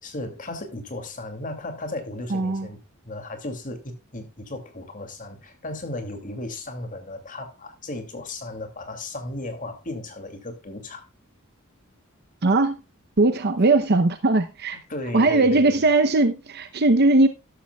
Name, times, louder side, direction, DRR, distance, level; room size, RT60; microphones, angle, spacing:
voice 1, 0.0-2.8 3.0-11.1 14.9-15.7, left 2 dB, 40° left, 2.6 m, -35 dB
voice 2, 2.3-2.7 12.4-12.8 13.2-14.8 15.1-17.3, right 2 dB, 50° right, 0.8 m, -19 dB
12.5 x 12.5 x 2.3 m
head